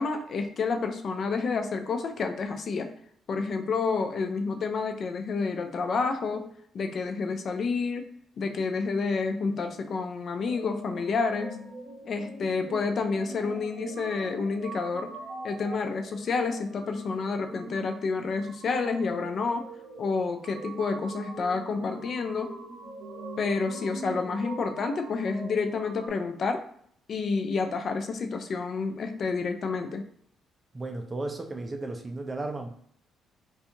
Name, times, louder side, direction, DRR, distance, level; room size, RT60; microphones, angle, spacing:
voice 1, 0.0-2.9 3.3-6.5 6.7-8.1 8.4-11.6 12.1-15.1 15.4-19.7 20.0-22.6 23.4-26.6 27.1-30.0, left 4 dB, 55° left, 6 dB, 0.4 m, -29 dB
sound 1, 10.4-26.1, right 3 dB, 70° right, 0.6 m, -43 dB
voice 2, 30.7-32.7, right 2 dB, 25° right, 4 dB, 0.4 m, -34 dB
2.7 x 2.3 x 2.6 m, 0.64 s
cardioid pair, 90°, 0 cm